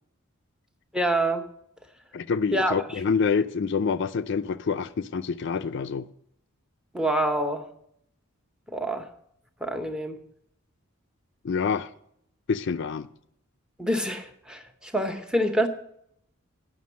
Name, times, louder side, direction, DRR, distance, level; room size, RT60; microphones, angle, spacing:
voice 1, 0.9-1.5 2.5-2.8 6.9-7.7 8.7-9.1 9.6-10.2 13.8-15.7, right 1 dB, 5° right, 0.8 m, -26 dB
voice 2, 2.1-6.1 11.4-11.9 12.5-13.1, left 5 dB, 55° left, 0.4 m, -27 dB
9.4 x 6.0 x 8.3 m
head